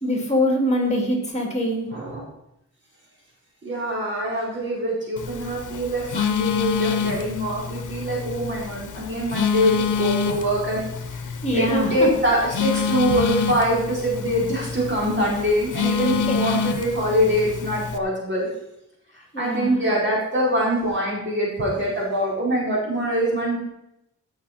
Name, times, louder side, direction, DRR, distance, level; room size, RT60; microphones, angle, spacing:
voice 1, 0.0-1.9 11.4-12.1 16.3-16.4 19.3-19.8, equal, 20° left, 1 dB, 3.0 m, -23 dB
voice 2, 1.9-2.2 3.6-10.8 11.1-11.2 11.5-18.5 19.4-23.6, equal, 40° right, -5 dB, 4.3 m, -24 dB
Telephone, 5.2-18.0, left 6 dB, 85° left, 0.8 m, -27 dB
16.5 x 6.4 x 4.4 m, 0.83 s
wide cardioid pair, 115°, 30 cm